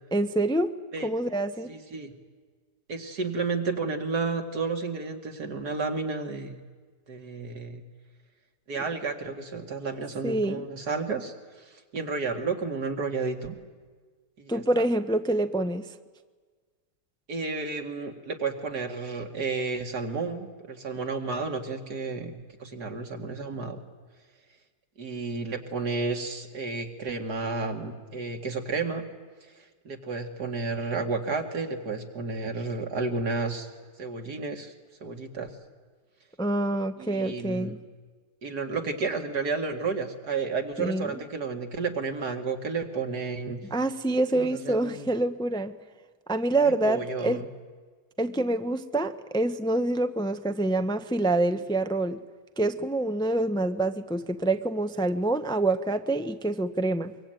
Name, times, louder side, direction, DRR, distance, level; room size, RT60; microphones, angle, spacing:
voice 1, 0.1-1.7 10.2-10.7 14.5-15.9 36.4-37.8 40.8-41.2 43.7-45.8 46.3-47.4 48.2-52.2 52.6-57.1, right 2 dB, 5° left, 9 dB, 0.5 m, -26 dB
voice 2, 1.7-2.1 2.9-6.6 7.1-7.8 8.7-11.3 11.9-13.5 14.4-14.6 17.3-22.3 22.6-23.8 25.0-29.0 29.8-33.7 34.0-34.7 35.0-35.5 37.0-37.7 38.4-43.6 44.3-45.1 46.6-47.5, right 4 dB, 90° right, 4 dB, 2.8 m, -31 dB
24.0 x 24.0 x 9.1 m, 1.5 s
omnidirectional pair, 1.7 m